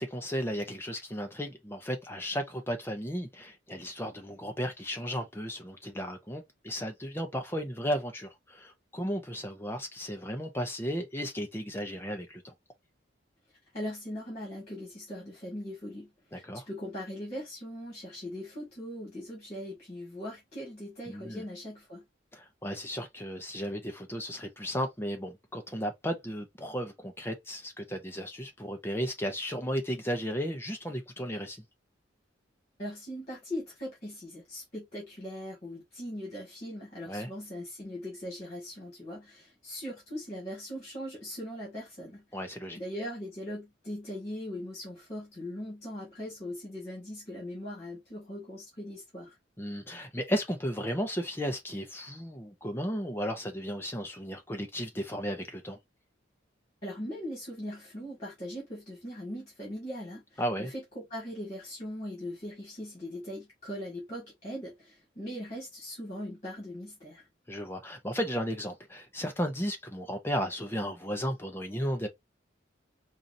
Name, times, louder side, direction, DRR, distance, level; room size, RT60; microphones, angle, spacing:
voice 1, 0.0-12.5 16.3-16.6 21.1-21.4 22.3-31.6 37.1-37.3 42.3-42.8 49.6-55.8 60.4-60.7 67.5-72.1, equal, 10° left, 0.7 m, -34 dB
voice 2, 13.7-22.0 32.8-42.2 42.8-49.4 56.8-67.2, equal, 35° left, 2.2 m, -40 dB
4.6 x 2.6 x 2.7 m
head